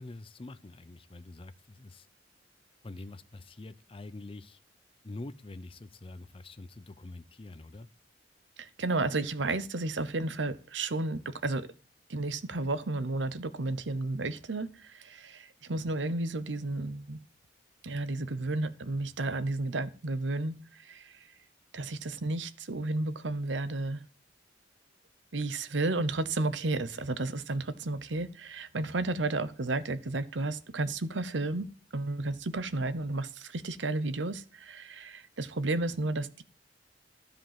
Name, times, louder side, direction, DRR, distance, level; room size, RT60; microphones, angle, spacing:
voice 1, 0.0-2.1 2.8-4.6 5.0-7.9, left 2 dB, 30° left, 0.6 m, -45 dB
voice 2, 8.6-11.7 12.1-17.2 17.8-21.2 21.7-24.0 25.3-36.4, right 2 dB, 80° right, 0.9 m, -32 dB
13.0 x 5.2 x 7.5 m
head